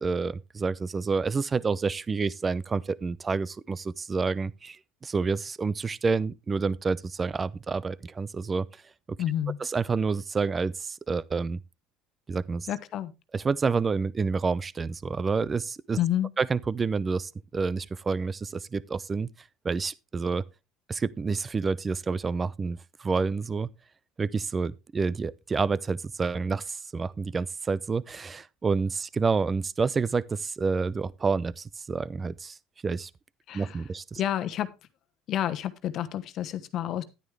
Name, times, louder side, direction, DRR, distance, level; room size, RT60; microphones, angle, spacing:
voice 1, 0.0-8.7 9.6-11.6 12.3-12.7 13.3-16.0 16.4-19.3 19.6-20.4 20.9-23.7 24.2-32.6 32.8-33.1 33.5-34.2, right 4 dB, 25° right, 0.6 m, -28 dB
voice 2, 9.2-9.6 12.7-13.1 16.0-16.3 33.5-33.8 34.2-34.7 35.3-37.0, left 11 dB, 55° left, 1.1 m, -29 dB
11.0 x 9.6 x 3.4 m
supercardioid pair, 85°, 0 cm